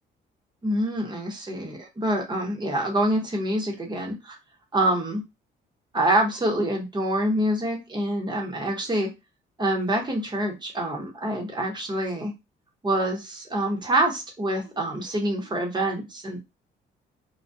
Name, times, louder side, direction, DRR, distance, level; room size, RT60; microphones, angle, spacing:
voice 1, 0.6-4.4 4.7-5.2 5.9-9.1 9.6-12.3 12.8-16.4, right 1 dB, 20° right, 1 dB, 1.0 m, -26 dB
2.3 x 2.3 x 2.6 m, 0.23 s
cardioid pair, 90°, 20 cm